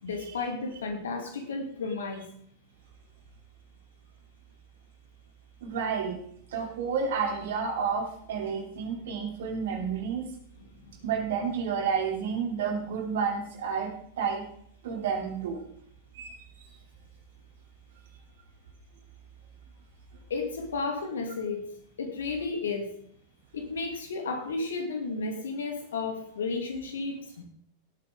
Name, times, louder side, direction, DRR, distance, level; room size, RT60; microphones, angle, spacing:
voice 1, 0.0-2.2 10.8-10.9 20.3-21.7 22.0-22.9 23.5-27.4, left 4 dB, 65° left, 4 dB, 2.6 m, -33 dB
voice 2, 5.6-6.2 6.5-10.3 11.0-14.4 14.8-15.6 16.1-16.7, right 6 dB, 55° right, 2 dB, 3.2 m, -30 dB
17.5 x 8.7 x 3.8 m, 0.64 s
figure-of-eight pair, 90°, 0 cm